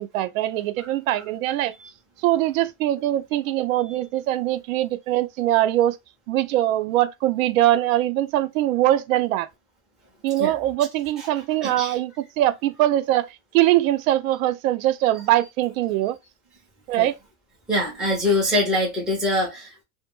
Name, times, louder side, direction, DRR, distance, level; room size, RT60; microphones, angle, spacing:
voice 1, 0.0-1.7 2.2-6.0 6.3-9.5 10.2-16.2 16.9-17.2, right 14 dB, 90° right, 0.5 m, -22 dB
voice 2, 11.6-12.0 17.0-17.1 17.7-19.8, left 1 dB, ahead, 0.4 m, -24 dB
2.1 x 2.1 x 3.0 m
supercardioid pair, 165°, 39 cm